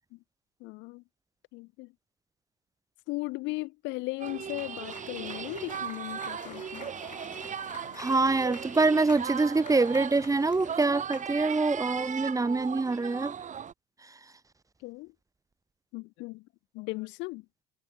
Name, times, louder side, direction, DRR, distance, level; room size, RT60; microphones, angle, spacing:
voice 1, 0.6-1.0 1.5-1.9 3.1-6.9 14.8-15.1 15.9-16.5 16.7-17.4, left 23 dB, 60° left, 6.7 m, -37 dB
Cheering / Applause, 4.2-11.9, left 4 dB, 90° left, 6.1 m, -49 dB
sound 1, 4.2-13.7, right 8 dB, 35° right, 4.9 m, -38 dB
voice 2, 8.0-13.3, right 3 dB, 15° right, 2.3 m, -25 dB
figure-of-eight pair, 60°, 21 cm